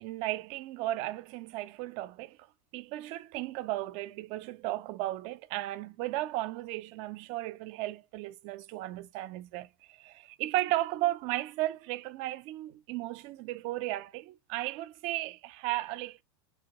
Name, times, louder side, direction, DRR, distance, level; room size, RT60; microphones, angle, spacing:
voice 1, 0.0-2.4 2.7-16.2, right 16 dB, 50° right, 0.5 m, -35 dB
3.4 x 3.3 x 2.9 m
supercardioid pair, 125°, 14 cm